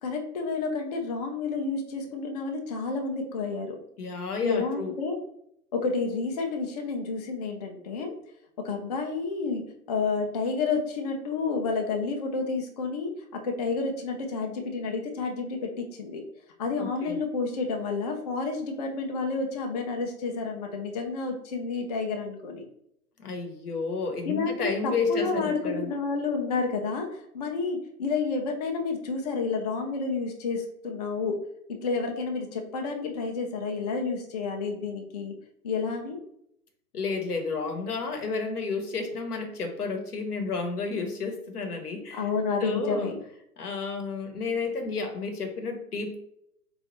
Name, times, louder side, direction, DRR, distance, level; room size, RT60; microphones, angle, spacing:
voice 1, 0.0-3.8 4.4-5.2 5.7-8.2 8.6-9.6 9.9-16.2 16.6-22.6 24.3-31.4 31.7-35.3 35.6-36.2 42.1-43.2, left 4 dB, 30° left, 3 dB, 0.3 m, -30 dB
voice 2, 4.0-4.9 16.8-17.2 23.2-25.9 36.9-42.2 42.6-43.1 43.6-46.2, left 4 dB, 80° left, 4 dB, 0.9 m, -31 dB
4.1 x 2.3 x 2.9 m, 0.73 s
figure-of-eight pair, 115°, 45 cm